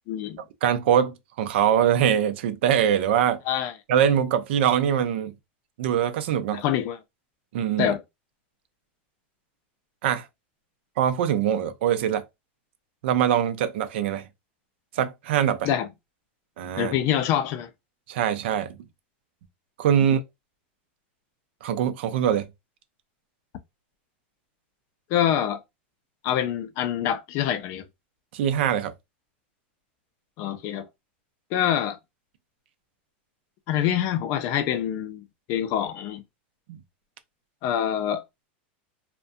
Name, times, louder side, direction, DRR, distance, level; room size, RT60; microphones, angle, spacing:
voice 1, 0.1-0.4 3.5-3.7 6.5-7.0 7.8-8.0 15.6-15.9 16.8-17.7 25.1-25.6 26.2-27.8 30.4-30.9 31.5-32.0 33.7-36.2 37.6-38.2, left 10 dB, 45° left, 0.4 m, -25 dB
voice 2, 0.6-3.4 3.9-5.3 5.8-6.6 7.5-7.9 10.0-10.3 11.0-12.2 13.0-14.3 14.9-15.7 16.6-16.9 18.1-18.8 19.8-20.2 21.6-22.5 28.3-28.9 36.7-36.8, right 9 dB, 70° right, 0.5 m, -23 dB
2.4 x 2.1 x 2.6 m
supercardioid pair, 140°, 6 cm